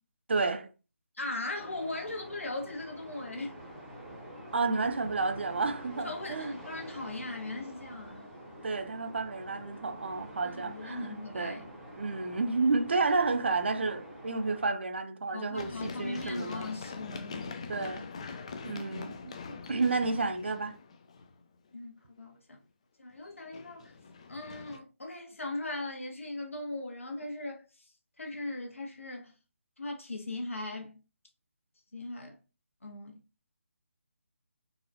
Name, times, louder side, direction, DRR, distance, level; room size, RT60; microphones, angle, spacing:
voice 1, 0.3-0.7 4.5-6.5 8.6-11.7 12.0-16.7 17.7-18.1 18.6-19.3 19.7-20.8, right 3 dB, 55° right, 0.5 m, -31 dB
voice 2, 1.1-3.5 6.0-8.3 10.4-11.6 15.3-17.5 19.5-19.7 21.7-22.6 23.0-23.9 24.3-29.3 29.8-31.0 31.9-32.4 32.8-33.2, left 2 dB, 70° left, 1.1 m, -39 dB
sound 1, 1.5-14.7, equal, ahead, 0.7 m, -47 dB
Run, 15.6-21.4 23.3-24.8, left 4 dB, 25° left, 0.3 m, -43 dB
4.1 x 2.5 x 2.6 m
figure-of-eight pair, 150°, 7 cm